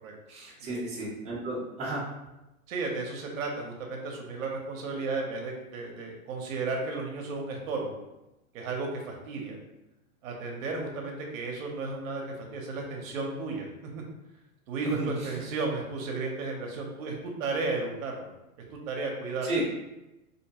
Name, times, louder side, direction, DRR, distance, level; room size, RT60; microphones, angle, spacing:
voice 1, 0.3-2.0 14.8-15.1 19.4-19.7, right 2 dB, 15° right, -7 dB, 0.7 m, -33 dB
voice 2, 2.7-7.9 8.5-9.6 10.2-13.7 14.0-14.1 14.7-18.3 18.9-19.5, right 3 dB, 65° right, 1 dB, 0.7 m, -34 dB
2.6 x 2.2 x 2.8 m, 0.97 s
hypercardioid pair, 135°, 43 cm